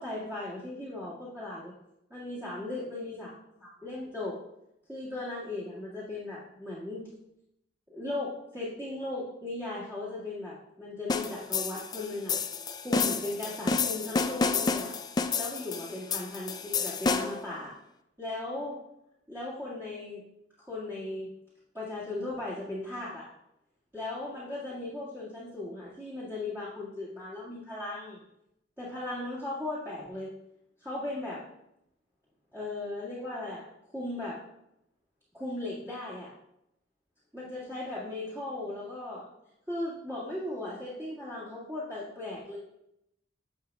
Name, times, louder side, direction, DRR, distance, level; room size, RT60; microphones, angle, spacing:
voice 1, 0.0-1.7 2.1-3.3 3.6-4.4 4.9-7.2 7.9-12.4 12.8-15.0 15.4-17.7 18.2-18.8 19.3-20.2 20.7-21.3 21.7-23.3 23.9-28.2 28.8-30.3 30.8-31.4 32.5-33.7 33.9-34.4 35.3-36.3 37.3-39.3 39.7-42.6, left 2 dB, 10° right, -9 dB, 2.0 m, -37 dB
sound 1, 11.1-17.5, left 4 dB, 20° left, 0.4 m, -30 dB
11.0 x 6.6 x 2.3 m, 0.82 s
head